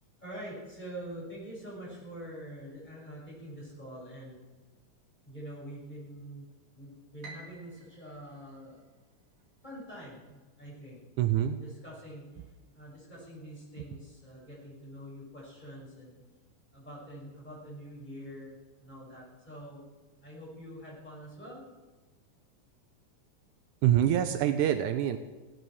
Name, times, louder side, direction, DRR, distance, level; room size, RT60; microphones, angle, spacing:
voice 1, 0.2-4.4 5.2-6.5 6.7-8.8 9.6-11.0 11.5-12.4 12.7-16.1 16.7-19.8 20.2-21.6, right 1 dB, 10° left, -5 dB, 6.3 m, -45 dB
Piano, 7.2-9.5, right 2 dB, 60° right, 3.0 m, -52 dB
voice 2, 11.2-11.6 23.8-25.2, right 11 dB, 80° right, 8 dB, 2.1 m, -25 dB
17.0 x 9.1 x 6.4 m, 1.2 s
omnidirectional pair, 3.7 m